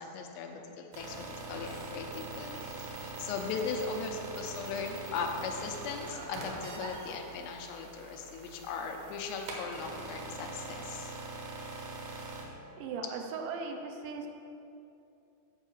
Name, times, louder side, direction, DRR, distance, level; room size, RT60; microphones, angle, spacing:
voice 1, 0.0-11.1, left 5 dB, 85° left, 3 dB, 2.8 m, -38 dB
sound 1, 0.9-12.4, right 2 dB, 65° right, 2.0 m, -43 dB
voice 2, 12.8-14.3, right 5 dB, 85° right, 3 dB, 2.9 m, -38 dB
8.2 x 4.7 x 6.9 m, 2.7 s
omnidirectional pair, 5.0 m